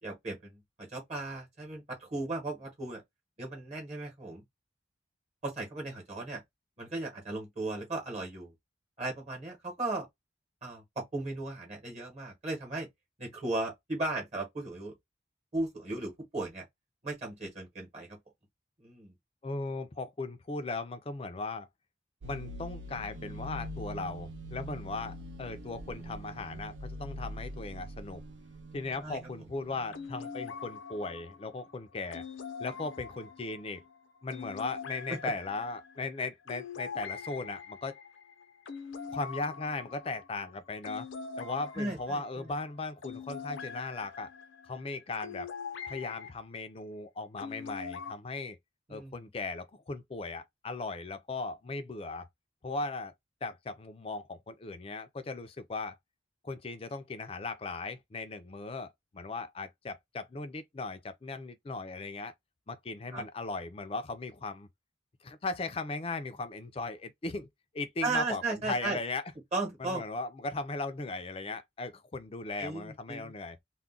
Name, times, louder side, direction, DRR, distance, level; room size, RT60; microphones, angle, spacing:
voice 1, 0.0-3.0 3.4-4.4 5.4-6.4 6.8-8.5 9.0-10.1 10.6-12.9 13.2-14.9 15.5-16.6 17.0-18.2 18.8-19.1 29.0-29.2 35.1-35.3 41.7-42.5 48.9-49.1 63.1-63.2 68.0-69.0 69.5-70.0 72.6-73.3, right 2 dB, 35° right, 1.0 m, -36 dB
voice 2, 19.4-21.7 22.2-28.2 28.7-32.2 32.6-33.8 34.2-38.0 39.1-41.1 41.4-44.3 44.6-45.5 45.9-48.6 48.9-52.3 52.6-53.1 53.4-56.0 56.4-62.3 62.7-64.7 65.2-67.5 67.7-69.2 69.8-73.6, left 3 dB, 30° left, 0.4 m, -37 dB
sound 1, 22.2-30.2, equal, 75° right, 0.4 m, -43 dB
sound 2, 29.9-46.3 47.4-48.1, left 6 dB, 85° left, 0.6 m, -44 dB
2.4 x 2.1 x 3.6 m
head